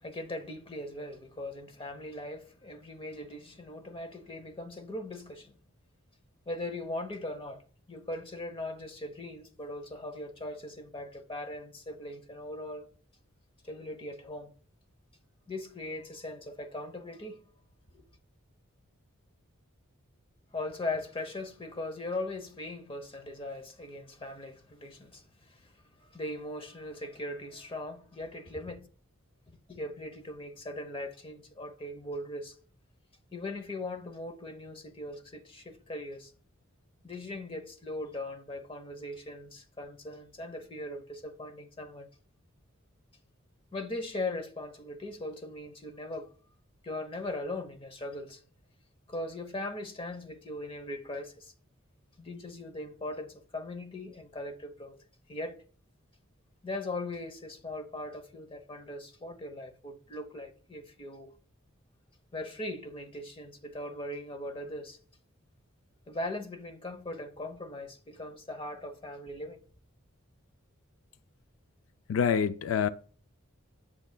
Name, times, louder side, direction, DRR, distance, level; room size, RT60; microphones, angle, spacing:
voice 1, 0.0-5.6 6.5-7.6 7.9-12.9 13.6-14.5 15.5-17.4 17.9-18.0 20.5-25.7 26.0-28.8 29.5-32.5 33.3-36.3 37.0-42.1 43.7-46.3 46.8-48.4 49.1-51.5 52.2-55.0 55.3-55.6 56.6-61.3 62.3-65.0 66.1-69.6, left 1 dB, 25° left, 0.8 m, -39 dB
voice 2, 72.1-72.9, left 7 dB, 75° left, 0.3 m, -26 dB
7.8 x 7.0 x 2.2 m
head